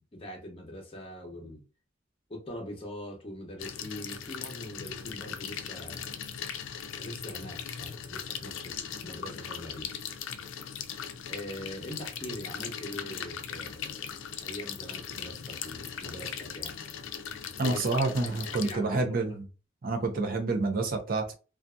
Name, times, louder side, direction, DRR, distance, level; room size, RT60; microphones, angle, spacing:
voice 1, 0.0-1.6 2.3-6.2 6.9-9.9 11.3-14.2 14.4-16.7 17.6-17.8 18.2-19.1, left 1 dB, 30° left, 0.8 m, -42 dB
sound 1, 3.6-18.7, left 8 dB, 85° left, 0.4 m, -39 dB
voice 2, 17.6-19.4 19.8-21.3, right 3 dB, 50° right, 0.6 m, -28 dB
2.6 x 2.4 x 2.2 m
head